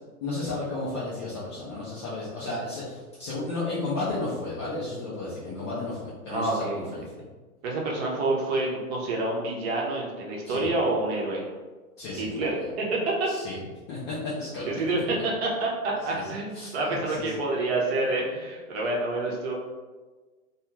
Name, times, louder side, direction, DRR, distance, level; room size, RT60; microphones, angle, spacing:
voice 1, 0.2-7.2 10.4-10.7 12.0-12.7 13.3-13.6 13.9-14.8 16.1-16.2 16.5-17.3, left 2 dB, 20° left, -9 dB, 0.3 m, -33 dB
voice 2, 6.3-6.9 7.6-11.4 12.1-13.3 14.6-19.5, right 2 dB, 45° right, -2 dB, 0.8 m, -28 dB
2.4 x 2.3 x 3.0 m, 1.3 s
figure-of-eight pair, 110°, 44 cm